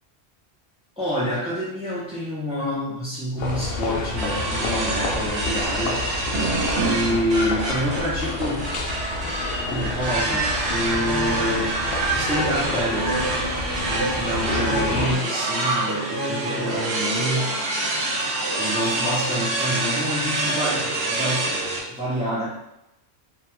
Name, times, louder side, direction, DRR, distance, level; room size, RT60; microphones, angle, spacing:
voice 1, 1.0-6.1 6.7-8.6 9.7-11.8 12.1-13.2 13.9-17.5 18.6-21.6 21.9-22.5, equal, 10° right, -10 dB, 0.4 m, -27 dB
sound 1, 3.4-15.2, left 2 dB, 70° left, 0.8 m, -30 dB
sound 2, 4.2-21.8, right 2 dB, 80° right, 0.8 m, -26 dB
2.3 x 2.2 x 2.9 m, 0.85 s
omnidirectional pair, 1.1 m